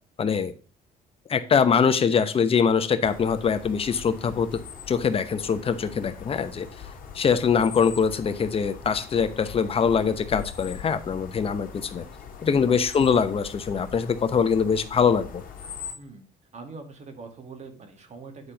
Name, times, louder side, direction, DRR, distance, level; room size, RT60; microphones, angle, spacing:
voice 1, 0.2-0.5 1.3-4.5 4.9-6.7 7.1-12.0 12.4-15.4, left 6 dB, 35° left, 10 dB, 0.9 m, -23 dB
sound 1, 3.0-15.9, left 7 dB, 55° left, 1.9 m, -42 dB
voice 2, 15.9-16.3 16.5-18.5, right 4 dB, 40° right, 5 dB, 1.9 m, -43 dB
9.8 x 4.3 x 5.0 m, 0.37 s
cardioid pair, 110°, 17 cm